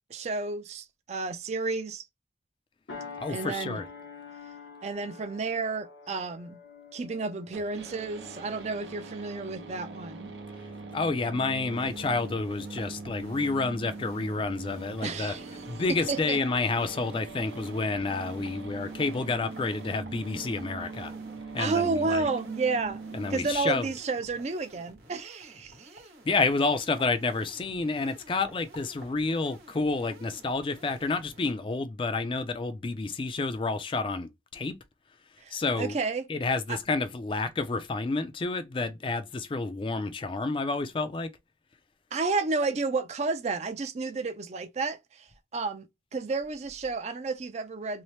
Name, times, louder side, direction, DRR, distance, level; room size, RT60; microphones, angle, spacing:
voice 1, 0.1-2.0 3.3-3.8 4.8-6.6 6.9-10.3 15.0-15.5 15.9-16.4 21.6-23.0 23.3-26.0 35.4-36.2 36.7-36.8 42.1-45.3 45.5-45.9 46.1-48.0, right 4 dB, 40° right, 0.4 m, -31 dB
sound 1, 2.9-11.7 12.2-12.4, left 4 dB, 85° left, 0.8 m, -48 dB
voice 2, 3.2-3.9 10.9-15.3 15.7-21.1 21.5-22.3 23.1-23.9 26.2-34.7 35.5-36.0 36.3-41.3, left 3 dB, 30° left, 0.3 m, -29 dB
sound 2, 7.5-23.5, right 3 dB, 85° right, 0.7 m, -42 dB
sound 3, 11.6-31.5, right 1 dB, 65° right, 1.0 m, -52 dB
2.7 x 2.0 x 3.1 m
head